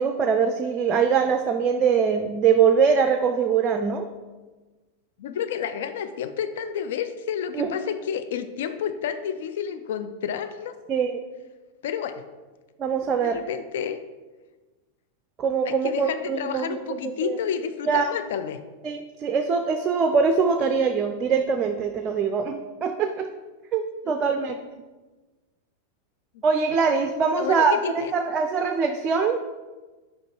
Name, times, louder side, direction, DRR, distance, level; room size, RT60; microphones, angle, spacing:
voice 1, 0.0-4.1 7.5-7.7 10.9-11.2 12.8-13.4 15.4-16.9 17.2-17.4 17.9-18.1 18.8-23.2 23.7-24.6 26.4-29.5, right 6 dB, 30° right, 6 dB, 0.4 m, -23 dB
voice 2, 5.2-10.7 11.8-12.2 13.2-14.0 15.7-18.6 24.5-24.6 26.3-26.4 27.4-28.1, left 8 dB, 55° left, 9 dB, 0.4 m, -30 dB
5.0 x 5.0 x 4.6 m, 1.2 s
figure-of-eight pair, 90°, 0 cm